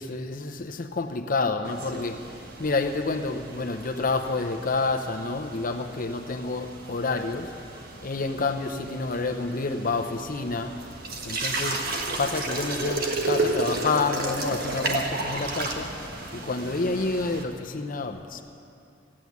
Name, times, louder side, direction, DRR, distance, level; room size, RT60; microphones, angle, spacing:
voice 1, 0.0-2.2 2.6-7.5 8.0-10.7 11.2-11.8 12.2-15.9 16.3-18.4, left 3 dB, 45° left, 7 dB, 0.7 m, -28 dB
sound 1, 1.6-17.4, right 2 dB, 55° right, 1.5 m, -33 dB
15.0 x 8.7 x 9.4 m, 2.5 s
head